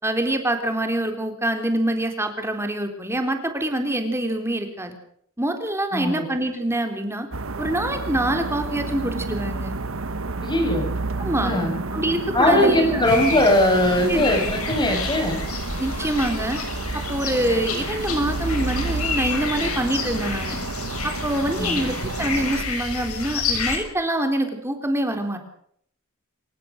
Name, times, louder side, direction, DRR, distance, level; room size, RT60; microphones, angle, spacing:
voice 1, 0.0-5.0 5.4-7.3 7.6-9.8 11.2-11.5 11.9-13.1 14.1-14.3 15.8-16.6 17.1-20.6 21.0-25.4, right 1 dB, 10° right, 5 dB, 3.6 m, -25 dB
voice 2, 5.9-6.3 10.4-10.9 11.4-11.7 12.3-15.4 21.6-21.8, left 1 dB, 20° left, 3 dB, 7.3 m, -20 dB
sound 1, 7.3-22.6, right 3 dB, 65° right, 1.3 m, -30 dB
sound 2, 13.0-23.8, left 4 dB, 85° left, 6.6 m, -30 dB
27.5 x 16.0 x 6.5 m, 0.65 s
head